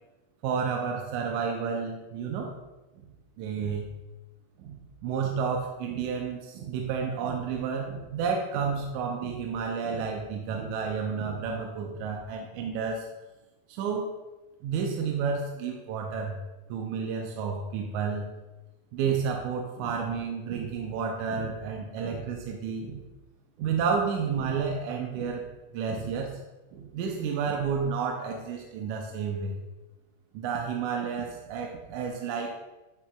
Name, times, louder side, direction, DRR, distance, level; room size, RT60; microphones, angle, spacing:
voice 1, 0.4-2.5 3.4-3.9 4.6-4.8 5.0-13.1 13.7-14.1 14.6-16.4 16.7-18.3 18.9-23.0 23.6-25.4 25.7-26.3 26.7-29.6 30.3-32.5, right 6 dB, 85° right, 1 dB, 2.0 m, -31 dB
10.0 x 4.4 x 2.3 m, 1.1 s
omnidirectional pair, 3.4 m